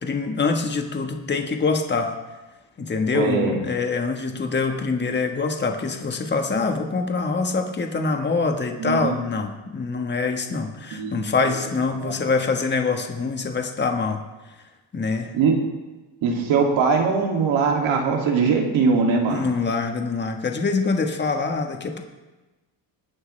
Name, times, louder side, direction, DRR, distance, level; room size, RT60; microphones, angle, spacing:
voice 1, 0.0-2.1 2.8-14.2 14.9-15.3 19.3-22.0, left 4 dB, 25° left, 4 dB, 1.3 m, -24 dB
voice 2, 3.1-3.6 8.8-9.2 10.9-11.2 11.4-11.6 12.0-12.2 15.3-15.6 16.2-19.4, right 5 dB, 85° right, 1 dB, 2.6 m, -21 dB
22.0 x 9.5 x 3.3 m, 1.2 s
cardioid pair, 125°, 46 cm